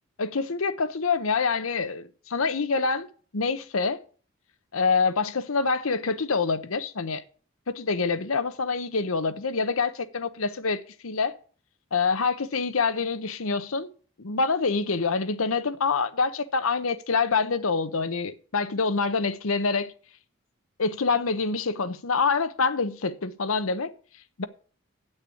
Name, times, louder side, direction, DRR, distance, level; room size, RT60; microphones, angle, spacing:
voice 1, 0.2-3.1 3.3-4.0 4.7-7.2 7.7-11.4 11.9-13.9 14.2-19.9 20.8-23.9 24.4-24.5, left 4 dB, 85° left, 0.9 m, -26 dB
8.7 x 6.6 x 8.3 m
head